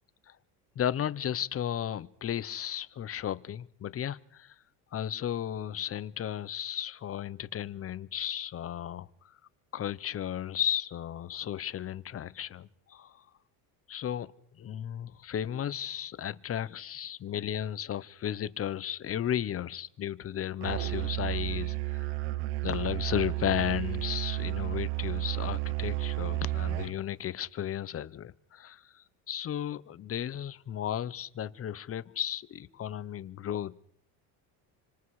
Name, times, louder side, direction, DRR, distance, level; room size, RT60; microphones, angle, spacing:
voice 1, 0.8-4.5 4.9-9.1 9.7-13.2 13.9-14.3 14.6-22.1 22.6-33.9, left 10 dB, 35° left, 16 dB, 0.9 m, -34 dB
Musical instrument, 20.6-27.0, right 18 dB, 80° right, 1.0 m, -32 dB
29.5 x 25.5 x 4.9 m, 0.66 s
cardioid pair, 130°, 42 cm